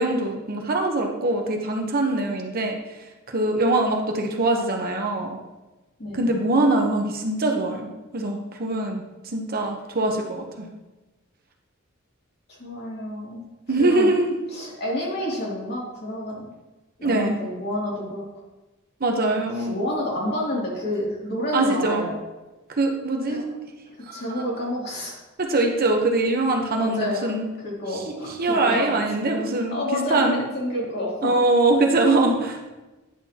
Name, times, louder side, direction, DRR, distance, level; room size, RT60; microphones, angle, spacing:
voice 1, 0.0-2.8 3.3-5.4 6.1-10.7 13.7-14.3 17.0-17.4 19.0-19.8 21.5-22.0 22.8-23.4 24.1-24.2 25.4-27.5 28.1-29.8 30.1-30.4 31.2-32.7, right 2 dB, 45° right, 2 dB, 1.0 m, -23 dB
voice 2, 6.0-6.3 12.5-13.4 13.8-14.1 14.5-16.5 17.0-18.3 19.6-22.2 23.3-23.4 23.9-25.2 26.7-29.0 29.7-31.3, left 1 dB, 50° left, -5 dB, 2.6 m, -29 dB
10.0 x 6.8 x 2.9 m, 1.1 s
head